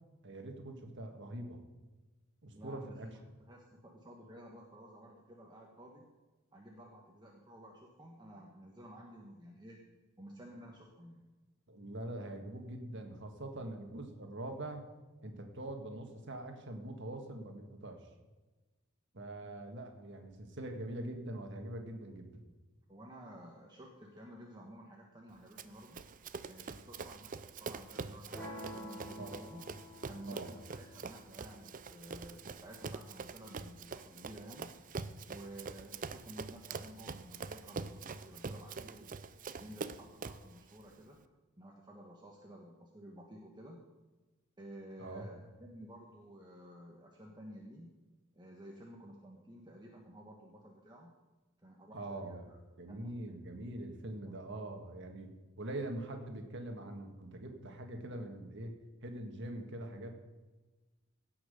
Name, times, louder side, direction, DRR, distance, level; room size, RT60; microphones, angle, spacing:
voice 1, 0.2-1.6 2.4-3.1 11.7-14.8 15.2-18.0 19.1-22.4 29.2-29.7 30.3-30.5 45.0-45.3 51.9-52.5 52.8-55.3 55.6-58.7 59.0-60.1, right 1 dB, 60° right, 4 dB, 1.7 m, -43 dB
voice 2, 2.5-6.0 6.5-9.9 10.2-11.3 22.9-26.0 26.5-29.6 30.0-34.7 35.3-39.2 39.6-41.2 41.6-43.8 44.6-47.9 48.3-51.1 51.6-52.6 52.9-53.4 54.2-54.3, right 1 dB, 20° right, -1 dB, 1.3 m, -53 dB
Run, 25.6-40.5, right 4 dB, 40° right, 0.5 m, -45 dB
sound 1, 28.3-34.4, equal, 5° left, 3.6 m, -51 dB
16.5 x 6.0 x 6.8 m, 1.2 s
head